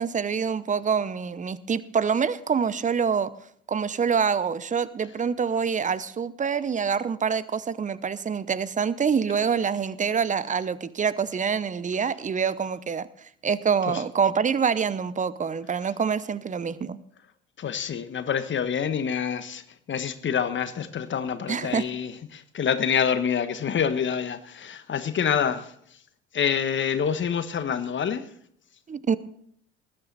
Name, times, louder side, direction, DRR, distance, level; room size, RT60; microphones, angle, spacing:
voice 1, 0.0-3.3 3.7-13.1 13.4-17.0 21.5-21.8 28.9-29.2, right 6 dB, 20° right, 17 dB, 0.8 m, -26 dB
voice 2, 17.6-19.6 19.9-25.7 26.3-28.2, left 7 dB, 35° left, 11 dB, 1.3 m, -27 dB
19.5 x 10.5 x 4.1 m, 0.68 s
figure-of-eight pair, 60°, 34 cm